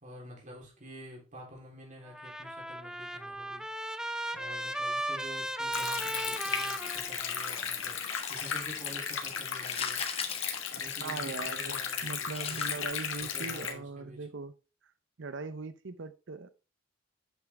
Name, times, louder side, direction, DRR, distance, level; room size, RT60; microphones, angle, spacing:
voice 1, 0.0-4.0 4.3-10.0 10.7-12.6 13.2-14.3, equal, 40° right, 3.6 m, -49 dB
Trumpet, 2.1-7.7, right 1 dB, 5° right, 0.5 m, -36 dB
Stream, 5.7-13.7, left 7 dB, 90° left, 1.5 m, -35 dB
sound 1, 8.1-8.8 9.5-11.3 12.3-12.7, left 6 dB, 30° left, 0.8 m, -40 dB
voice 2, 11.0-14.5 15.2-16.5, right 4 dB, 65° right, 0.7 m, -40 dB
8.3 x 5.9 x 3.4 m
head